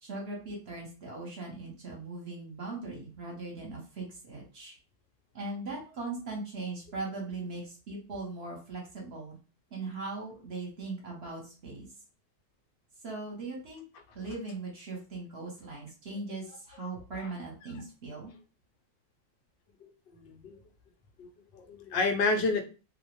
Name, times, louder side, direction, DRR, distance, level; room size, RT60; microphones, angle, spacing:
voice 1, 0.0-4.7 5.3-9.3 9.7-11.9 13.0-13.8 14.1-18.3, right 3 dB, 50° right, -1 dB, 0.9 m, -39 dB
voice 2, 20.2-20.6 21.2-21.3 21.5-22.6, left 3 dB, 85° left, 4 dB, 0.5 m, -30 dB
2.5 x 2.0 x 2.9 m, 0.35 s
omnidirectional pair, 1.6 m